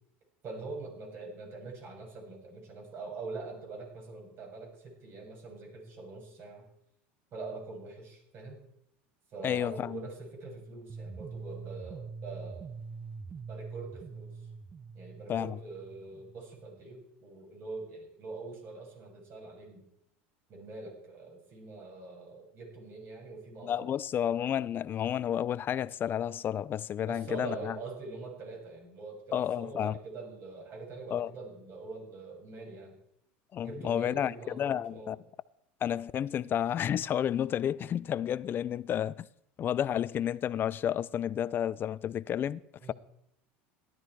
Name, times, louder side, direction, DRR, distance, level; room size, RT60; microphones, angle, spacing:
voice 1, 0.4-6.6 7.3-8.6 9.3-12.7 13.5-14.4 14.9-19.9 20.5-23.9 27.1-33.0 33.6-35.1 42.8-42.9, right 3 dB, 45° right, 6.6 m, -44 dB
voice 2, 9.4-10.0 15.3-15.6 23.6-27.8 29.3-30.0 31.1-31.3 33.5-35.2 35.8-39.3 39.6-42.6, left 10 dB, 35° left, 0.5 m, -31 dB
sound 1, 10.9-16.9, right 4 dB, 25° right, 0.8 m, -44 dB
17.5 x 12.0 x 4.7 m
supercardioid pair, 105°, 6 cm